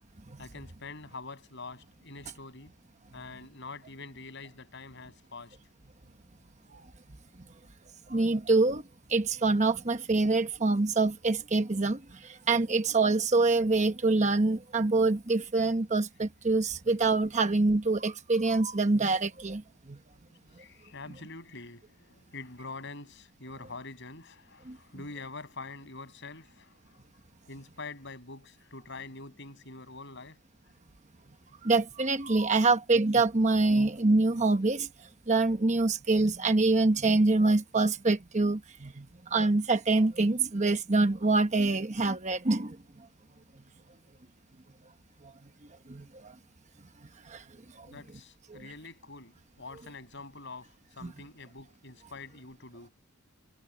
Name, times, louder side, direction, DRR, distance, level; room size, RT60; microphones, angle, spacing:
voice 1, 0.4-2.7 3.1-5.6 20.5-27.0 27.5-30.4 47.8-52.9, left 3 dB, 55° left, 7.4 m, -45 dB
voice 2, 8.1-8.8 9.1-20.0 24.7-24.8 31.6-34.9 35.3-42.8 45.9-46.3 47.3-47.4 47.8-47.9 48.5-48.6 51.0-51.1, right 3 dB, 35° right, 1.0 m, -25 dB
head